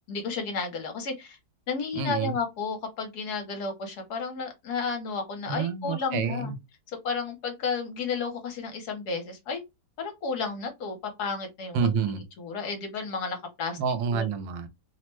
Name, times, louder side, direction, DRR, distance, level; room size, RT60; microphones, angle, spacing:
voice 1, 0.1-1.4 1.7-6.5 7.0-9.6 10.0-11.9 12.4-13.8 14.1-14.2, left 4 dB, 65° left, 1.2 m, -32 dB
voice 2, 1.9-2.4 5.5-6.6 11.7-12.2 13.8-14.7, right 6 dB, 85° right, 1.3 m, -28 dB
3.1 x 2.1 x 3.0 m
omnidirectional pair, 2.0 m